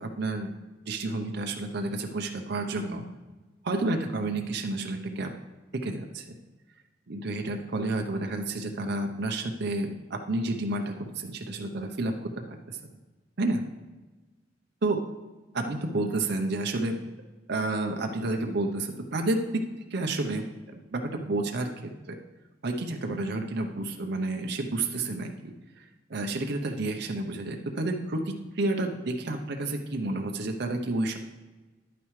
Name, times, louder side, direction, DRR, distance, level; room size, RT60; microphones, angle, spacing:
voice 1, 0.0-0.5 0.8-3.0 3.6-5.3 5.7-6.2 7.1-12.8 13.4-13.6 14.8-15.0 15.5-17.0 17.5-19.6 19.9-20.4 20.9-22.2 22.6-25.8 26.1-31.2, right 2 dB, 60° right, 3 dB, 0.7 m, -30 dB
10.5 x 9.0 x 3.2 m, 1.2 s
head